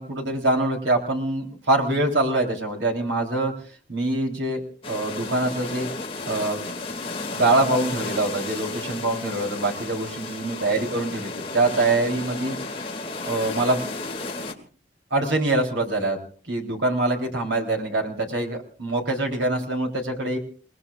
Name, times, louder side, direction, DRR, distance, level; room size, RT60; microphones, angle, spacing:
voice 1, 0.0-3.5 3.9-5.9 6.3-6.6 7.3-12.5 13.2-13.9 15.1-16.2 16.5-20.4, right 2 dB, 85° right, 2 dB, 3.7 m, -24 dB
sound 1, 4.8-14.5, left 3 dB, 30° left, 2.3 m, -33 dB
29.5 x 19.5 x 2.5 m, 0.40 s
head